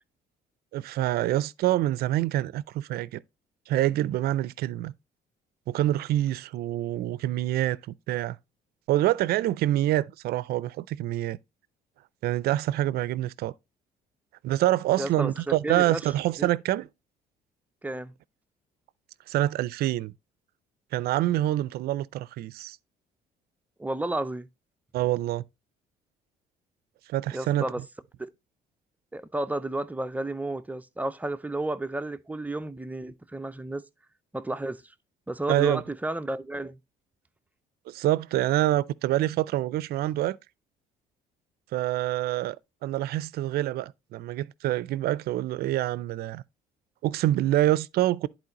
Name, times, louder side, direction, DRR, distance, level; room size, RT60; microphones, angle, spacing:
voice 1, 0.7-3.2 3.7-4.9 5.7-7.8 8.1-8.4 8.9-11.4 12.2-13.5 14.4-16.9 19.3-20.1 20.9-22.8 24.9-25.4 27.1-27.7 35.5-35.8 37.9-40.4 41.7-42.6 42.8-46.4 47.0-48.3, right 14 dB, 65° right, 0.4 m, -26 dB
voice 2, 15.0-16.1 16.4-16.5 17.8-18.1 23.8-24.5 27.3-27.8 28.2-28.3 29.1-33.8 34.3-34.8 35.3-36.8, right 2 dB, 10° right, 0.5 m, -32 dB
10.5 x 4.3 x 2.9 m
cardioid pair, 110°, 17 cm